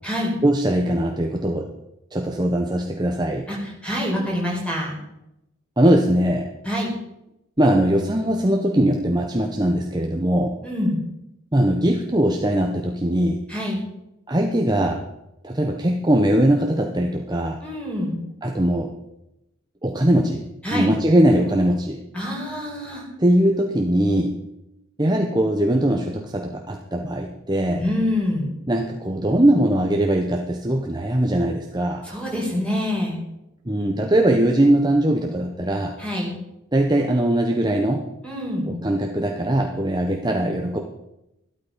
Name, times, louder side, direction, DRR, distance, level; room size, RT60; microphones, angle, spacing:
voice 1, 0.4-1.7 2.1-3.5 5.8-6.5 7.6-10.6 11.5-13.4 14.3-15.0 15.4-17.6 18.4-18.9 19.8-20.4 20.7-22.0 23.2-24.3 25.0-27.8 28.7-32.0 33.7-35.9 36.7-38.1 38.7-40.8, right 1 dB, 20° right, 2 dB, 1.0 m, -20 dB
voice 2, 3.8-4.9 6.6-6.9 10.6-11.0 13.5-13.8 17.6-18.2 20.6-20.9 22.1-23.0 27.8-28.5 32.0-33.2 36.0-36.3 38.2-38.7, left 1 dB, 5° left, -3 dB, 5.0 m, -25 dB
14.0 x 12.5 x 5.2 m, 0.87 s
head